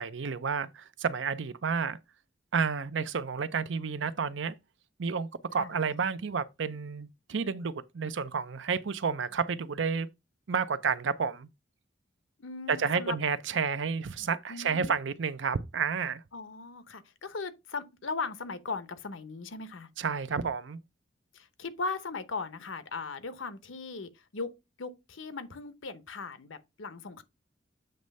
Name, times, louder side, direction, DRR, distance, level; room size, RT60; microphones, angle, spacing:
voice 1, 0.0-2.0 2.5-4.5 5.0-10.1 10.5-11.5 12.7-16.2 20.0-20.8, right 5 dB, 65° right, 0.6 m, -30 dB
voice 2, 12.4-13.2 14.5-14.9 16.3-19.9 21.3-24.5 24.8-27.2, left 4 dB, 80° left, 0.9 m, -38 dB
7.8 x 3.1 x 5.3 m
head